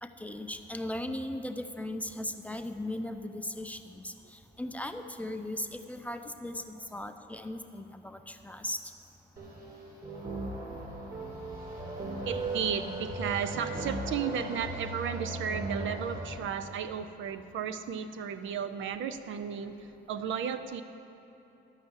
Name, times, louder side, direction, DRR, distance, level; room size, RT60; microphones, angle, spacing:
voice 1, 0.0-8.8, left 1 dB, 5° left, 6 dB, 0.6 m, -38 dB
sound 1, 9.4-16.4, right 2 dB, 45° right, 2.7 m, -37 dB
voice 2, 12.3-20.8, right 7 dB, 75° right, 10 dB, 0.6 m, -34 dB
12.5 x 5.6 x 8.1 m, 2.8 s
cardioid pair, 90°, 20 cm